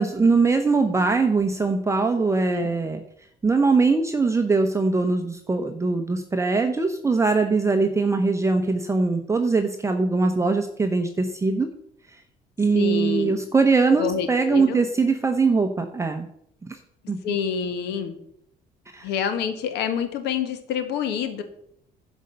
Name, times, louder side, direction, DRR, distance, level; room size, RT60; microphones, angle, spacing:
voice 1, 0.0-3.0 3.4-11.7 12.6-16.3 16.6-16.8 17.1-17.3 18.9-19.1, right 4 dB, 15° right, 5 dB, 0.9 m, -22 dB
voice 2, 12.7-13.4 14.0-14.8 17.2-18.2 19.0-21.4, left 7 dB, 85° left, 8 dB, 1.5 m, -27 dB
11.0 x 5.3 x 6.7 m, 0.70 s
cardioid pair, 110°, 17 cm